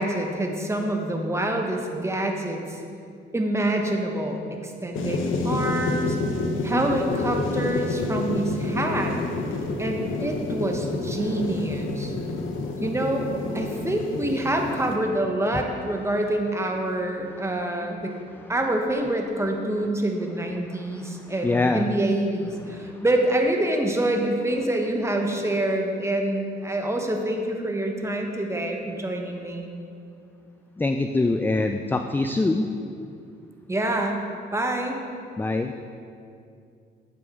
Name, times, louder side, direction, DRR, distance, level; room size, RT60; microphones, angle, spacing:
voice 1, 0.0-2.8 3.3-6.2 6.6-9.1 9.8-12.1 12.8-13.3 13.5-18.1 18.5-29.7 33.7-34.3 34.5-35.0, right 1 dB, 15° right, 2 dB, 1.0 m, -26 dB
sound 1, 4.9-15.0, left 3 dB, 80° left, 0.9 m, -29 dB
voice 2, 20.7-21.9 22.8-23.0 30.8-32.7 35.4-35.7, left 2 dB, 10° left, 6 dB, 0.3 m, -25 dB
9.1 x 7.6 x 3.7 m, 2.4 s
cardioid pair, 90°, 20 cm